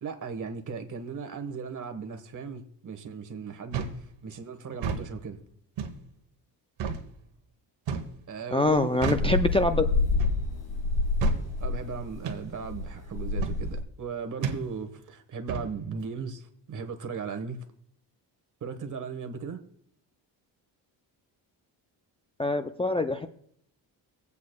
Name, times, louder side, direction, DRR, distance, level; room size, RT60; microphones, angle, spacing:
voice 1, 0.0-5.4 8.3-9.4 11.6-17.6 18.6-19.6, right 5 dB, 45° right, 8 dB, 1.3 m, -37 dB
sound 1, 3.7-4.0 4.7-5.1 5.8-6.0 6.8-7.0 7.9-8.2 9.0-9.3 10.2-10.4 11.2-11.4 12.2-12.4 13.4-13.6 14.4-14.6 15.5-15.7, right 6 dB, 90° right, 1.2 m, -31 dB
voice 2, 8.5-9.9 22.4-23.3, left 2 dB, 15° left, 6 dB, 0.3 m, -24 dB
sound 2, 8.7-13.8, left 3 dB, 75° left, 5.3 m, -28 dB
24.0 x 8.3 x 2.3 m, 0.68 s
cardioid pair, 120°, 44 cm